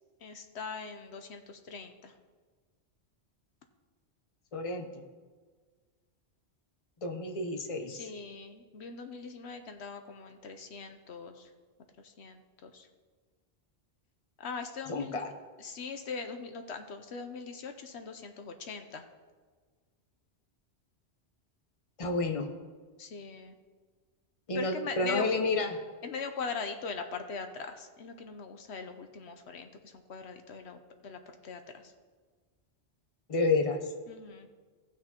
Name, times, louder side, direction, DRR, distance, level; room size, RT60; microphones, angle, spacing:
voice 1, 0.2-2.1 7.8-11.5 12.0-12.9 14.4-15.2 15.6-19.0 23.0-23.6 24.5-25.2 26.0-31.9 34.1-34.5, left 5 dB, 75° left, 7 dB, 1.0 m, -41 dB
voice 2, 4.5-5.0 7.0-8.1 14.9-15.3 22.0-22.5 24.5-25.8 33.3-33.9, left 3 dB, 35° left, 4 dB, 0.9 m, -30 dB
17.5 x 6.1 x 2.9 m, 1.5 s
omnidirectional pair, 1.1 m